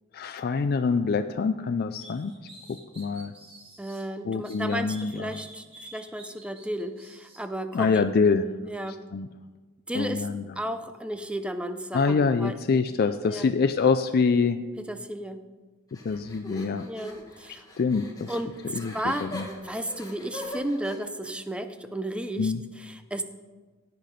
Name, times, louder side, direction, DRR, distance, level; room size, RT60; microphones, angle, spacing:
voice 1, 0.1-2.3 2.7-3.3 4.2-5.4 7.7-8.4 8.9-9.3 9.9-10.5 11.9-14.6 16.0-16.9 17.8-18.3 18.6-19.5 22.4-22.6, left 5 dB, 50° left, 8 dB, 0.4 m, -25 dB
sound 1, 2.0-4.0 4.4-7.4, right 1 dB, 25° right, 1.7 m, -49 dB
voice 2, 3.8-8.0 8.7-9.0 9.9-10.3 10.6-12.8 13.3-13.5 14.9-15.4 16.8-17.6 18.3-19.3 19.6-22.5 22.8-23.2, right 1 dB, 5° right, 9 dB, 0.6 m, -33 dB
sound 2, 15.9-21.0, left 1 dB, 20° left, 1.6 m, -41 dB
16.5 x 5.9 x 5.2 m, 1.3 s
head